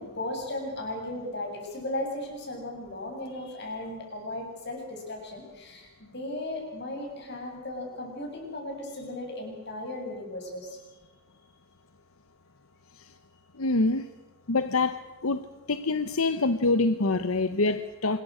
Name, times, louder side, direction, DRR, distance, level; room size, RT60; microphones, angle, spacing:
voice 1, 0.0-10.8, left 1 dB, 55° left, 2 dB, 7.7 m, -36 dB
voice 2, 13.6-14.1 14.5-15.4 15.7-18.2, left 3 dB, 85° left, 11 dB, 1.0 m, -25 dB
26.0 x 22.0 x 6.4 m, 1.2 s
head